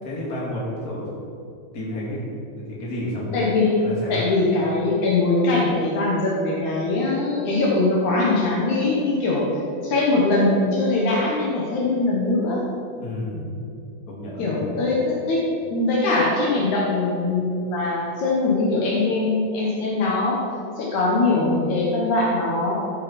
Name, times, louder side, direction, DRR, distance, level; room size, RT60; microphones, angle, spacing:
voice 1, 0.0-1.1 1.7-3.5 3.8-4.2 13.0-13.5 14.1-14.7, left 1 dB, 30° left, -5 dB, 2.7 m, -31 dB
voice 2, 3.3-9.4 9.8-12.6 14.4-15.0 15.3-15.4 15.7-20.4 20.8-22.8, left 2 dB, 65° left, -4 dB, 2.7 m, -21 dB
13.5 x 9.1 x 4.4 m, 2.6 s
omnidirectional pair, 3.7 m